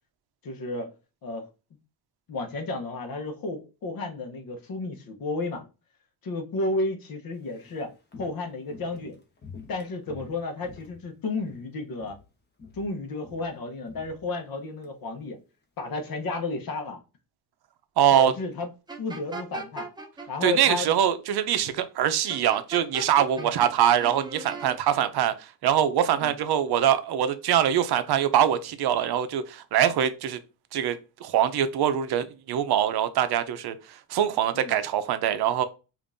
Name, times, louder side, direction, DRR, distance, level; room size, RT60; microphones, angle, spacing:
voice 1, 0.4-0.9 1.2-1.4 2.3-5.7 6.2-7.9 8.2-9.2 9.7-12.1 12.7-15.4 15.8-17.0 18.1-18.7 19.0-19.9 20.3-20.9 23.4-23.5 26.2-26.3 34.5-34.7, left 2 dB, 55° left, 1.0 m, -32 dB
Walk footsteps, 7.3-11.7 11.9-12.3 12.6-14.9 15.2-15.3, left 5 dB, 25° left, 0.9 m, -48 dB
voice 2, 18.0-18.3 20.4-30.4 30.7-35.6, right 10 dB, 65° right, 0.6 m, -23 dB
sound 1, 18.9-20.3 22.3-23.7 24.0-24.8, right 3 dB, 10° right, 0.5 m, -38 dB
5.1 x 2.6 x 2.6 m
cardioid pair, 140°, 41 cm